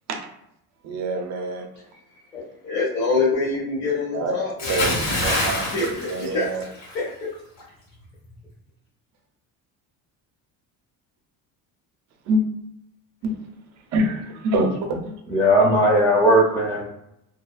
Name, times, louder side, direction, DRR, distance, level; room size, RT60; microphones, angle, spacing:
voice 1, 0.8-1.6 4.1-4.3 4.7-5.6 6.1-6.6 12.3-12.4 13.2-13.3 13.9-15.2, right 1 dB, 50° right, 3 dB, 0.6 m, -25 dB
voice 2, 2.6-5.0 5.6-6.7 6.9-7.3, left 4 dB, 50° left, -6 dB, 1.0 m, -25 dB
Bathtub (filling or washing) / Splash splatter, 4.6-7.0 7.3-7.6, left 1 dB, 75° left, 1.4 m, -25 dB
voice 3, 15.3-16.9, equal, 10° left, -5 dB, 0.7 m, -18 dB
2.7 x 2.4 x 2.3 m, 0.78 s
cardioid pair, 155°, 36 cm